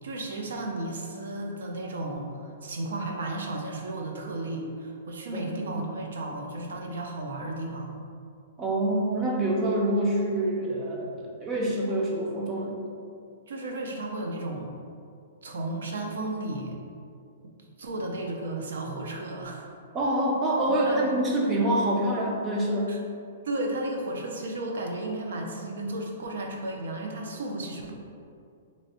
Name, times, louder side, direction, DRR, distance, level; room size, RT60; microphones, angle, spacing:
voice 1, 0.0-7.9 13.5-14.7 15.4-16.8 17.4-17.5 17.8-19.7 20.7-21.2 21.6-21.7 22.9-23.0 23.4-27.9, right 2 dB, 75° right, 1 dB, 0.6 m, -34 dB
voice 2, 5.3-5.8 8.6-12.8 19.9-22.9, right 1 dB, 15° right, -2 dB, 0.4 m, -26 dB
3.1 x 2.6 x 4.2 m, 2.4 s
hypercardioid pair, 180°, 0 cm